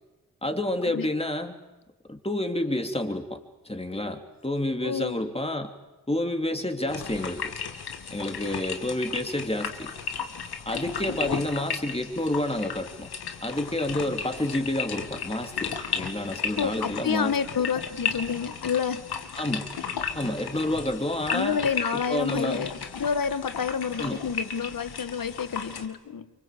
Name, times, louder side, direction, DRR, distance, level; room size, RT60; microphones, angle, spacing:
voice 1, 0.4-1.6 2.1-3.4 3.6-5.7 6.1-7.5 8.1-9.9 10.6-13.1 13.4-17.3 19.4-19.7 20.1-21.6 21.9-22.7 24.0-24.2, left 1 dB, 15° left, 5 dB, 3.2 m, -29 dB
voice 2, 4.8-5.2 16.6-19.1 21.3-26.3, left 6 dB, 65° left, 12 dB, 1.6 m, -29 dB
sound 1, 6.9-25.9, left 6 dB, 90° left, 2.2 m, -35 dB
27.0 x 24.0 x 8.5 m, 1.1 s
cardioid pair, 55°, 37 cm